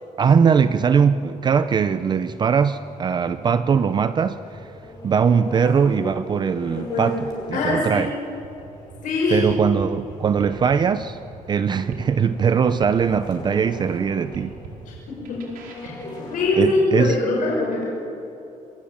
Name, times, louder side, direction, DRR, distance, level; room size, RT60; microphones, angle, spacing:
voice 1, 0.2-4.7 5.0-7.2 7.5-8.1 9.3-11.2 11.5-14.5 16.6-17.2, right 6 dB, 30° right, 12 dB, 0.5 m, -20 dB
sound 1, 0.6-16.7, left 2 dB, 30° left, 5.2 m, -41 dB
voice 2, 6.7-7.2 7.5-8.1 9.0-9.4 15.1-15.4 15.8-17.9, left 2 dB, 65° left, -3 dB, 5.5 m, -23 dB
sound 2, 8.3-17.2, right 4 dB, 90° right, 5.2 m, -42 dB
27.0 x 22.0 x 8.6 m, 2.8 s
cardioid pair, 180°, 14 cm